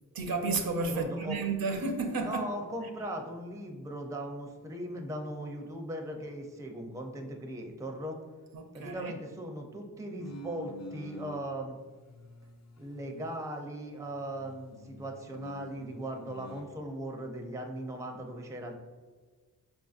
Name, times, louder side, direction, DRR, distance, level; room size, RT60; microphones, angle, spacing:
voice 1, 0.1-2.5 8.5-9.1, right 3 dB, 70° right, 5 dB, 0.6 m, -32 dB
voice 2, 0.9-1.4 2.2-8.2 8.7-11.8 12.8-18.8, right 1 dB, 10° right, 3 dB, 0.4 m, -38 dB
sound 1, 10.2-11.5 12.0-13.7 14.0-16.7, left 1 dB, 45° left, 0.5 m, -49 dB
5.1 x 2.6 x 2.4 m, 1.4 s
wide cardioid pair, 65°, 37 cm